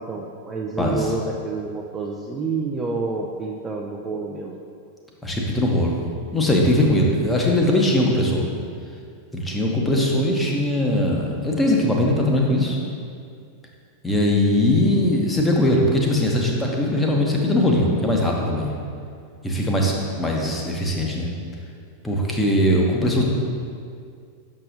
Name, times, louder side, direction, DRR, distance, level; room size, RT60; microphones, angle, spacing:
voice 1, 0.0-4.6, right 3 dB, 20° right, 0 dB, 0.4 m, -28 dB
voice 2, 5.2-6.0 6.3-8.4 9.3-12.8 14.0-18.7 19.4-21.3 22.0-23.2, left 1 dB, 10° left, -1 dB, 0.9 m, -20 dB
6.5 x 5.9 x 2.6 m, 2.3 s
figure-of-eight pair, 90°, 0 cm